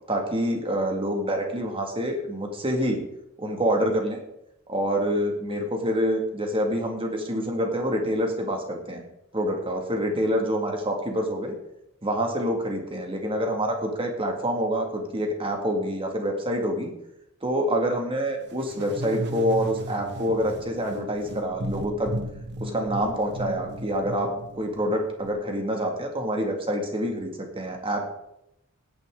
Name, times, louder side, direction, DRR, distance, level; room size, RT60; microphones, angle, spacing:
voice 1, 0.1-3.0 3.4-4.2 4.7-9.0 9.3-11.5 12.0-16.9 17.4-22.1 22.6-28.0, equal, 25° right, 2 dB, 2.1 m, -27 dB
sound 1, 18.5-25.3, equal, 50° right, 1.1 m, -35 dB
16.5 x 9.4 x 3.8 m, 0.83 s
head